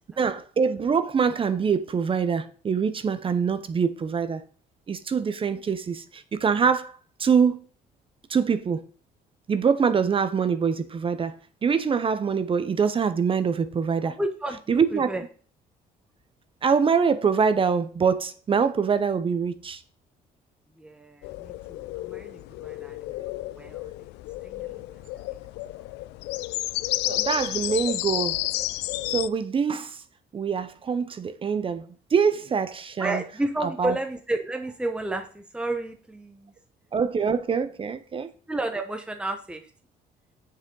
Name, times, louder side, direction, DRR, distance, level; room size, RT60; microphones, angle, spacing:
voice 1, 0.2-4.4 4.9-7.6 8.3-8.8 9.5-11.4 11.6-14.2 14.7-15.2 16.6-19.8 27.0-28.4 29.1-30.0 30.3-33.2 33.6-34.0 36.9-38.3, right 6 dB, 30° right, 0.8 m, -24 dB
voice 2, 14.0-15.2 20.8-23.3 23.6-23.9 24.4-24.9 33.0-36.5 38.5-39.6, right 2 dB, 5° right, 1.0 m, -32 dB
sound 1, 21.2-29.3, left 18 dB, 85° left, 0.4 m, -31 dB
7.2 x 6.5 x 3.8 m
cardioid pair, 110°, 17 cm